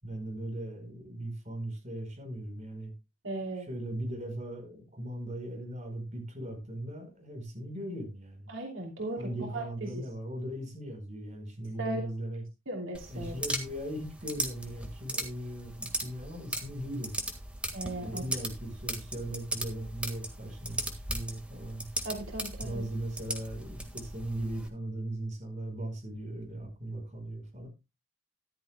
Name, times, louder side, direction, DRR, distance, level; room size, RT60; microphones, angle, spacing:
voice 1, 0.0-2.9 3.5-8.5 9.2-12.4 13.1-17.2 18.0-21.9 22.6-27.7, right 1 dB, 35° right, 3 dB, 5.2 m, -38 dB
voice 2, 3.2-3.7 8.5-10.0 11.8-12.1 12.7-13.3 17.7-18.2 22.0-22.8, right 2 dB, 75° right, 1 dB, 2.8 m, -37 dB
sound 1, 12.9-24.7, right 1 dB, 5° right, 1.7 m, -38 dB
14.0 x 11.5 x 2.2 m, 0.24 s
head